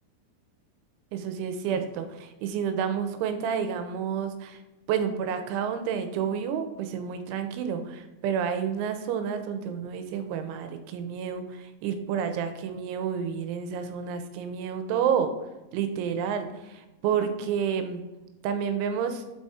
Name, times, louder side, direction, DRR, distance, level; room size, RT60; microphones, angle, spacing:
voice 1, 1.1-4.6 4.9-15.3 15.7-18.0 18.4-19.2, right 7 dB, 85° right, 8 dB, 3.0 m, -30 dB
7.0 x 3.6 x 4.2 m, 1.1 s
omnidirectional pair, 5.3 m